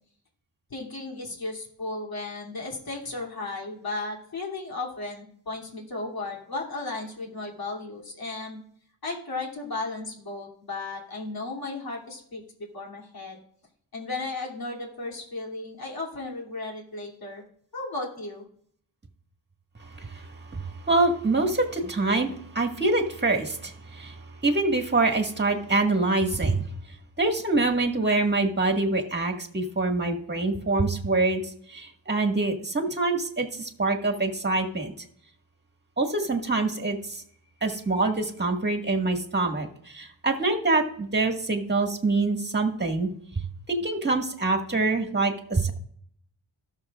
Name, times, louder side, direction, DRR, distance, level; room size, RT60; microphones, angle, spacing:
voice 1, 0.7-8.6 9.0-13.4 13.9-17.4 17.7-18.4, left 3 dB, 50° left, -3 dB, 2.9 m, -35 dB
voice 2, 19.8-26.7 27.2-34.9 36.0-37.2 37.6-43.1 43.7-45.7, right 3 dB, 25° right, 3 dB, 1.8 m, -25 dB
17.5 x 6.6 x 2.4 m, 0.64 s
cardioid pair, 65°, 45 cm